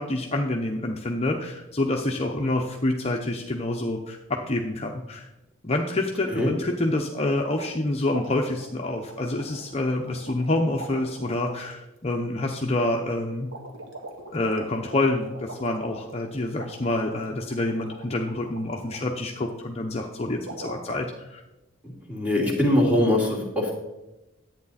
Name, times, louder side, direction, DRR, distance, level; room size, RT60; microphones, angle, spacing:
voice 1, 0.0-5.3 5.6-13.5 14.3-21.4, left 2 dB, 30° left, 2 dB, 0.8 m, -27 dB
sound 1, 7.6-7.8 8.1-10.5 10.7-11.7 13.5-19.0 20.4-20.8, right 2 dB, 75° right, 1.8 m, -42 dB
voice 2, 22.1-23.7, left 1 dB, 5° right, -2 dB, 2.4 m, -22 dB
11.0 x 8.6 x 4.2 m, 0.99 s
head